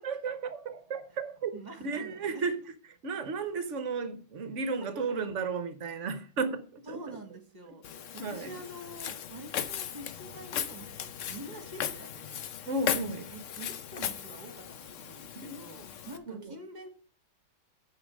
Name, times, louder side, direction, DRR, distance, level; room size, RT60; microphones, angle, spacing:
voice 1, 0.0-1.6 1.8-2.6 3.0-7.2 8.2-8.6 12.7-13.3 15.4-15.6 16.3-16.6, right 4 dB, 55° right, 0.9 m, -34 dB
voice 2, 1.5-2.4 4.9-5.0 6.9-7.8 8.1-12.4 13.3-16.9, right 1 dB, 25° right, 1.5 m, -46 dB
Walk footsteps, 7.8-16.2, left 9 dB, 65° left, 0.8 m, -37 dB
9.7 x 4.8 x 6.2 m
omnidirectional pair, 1.9 m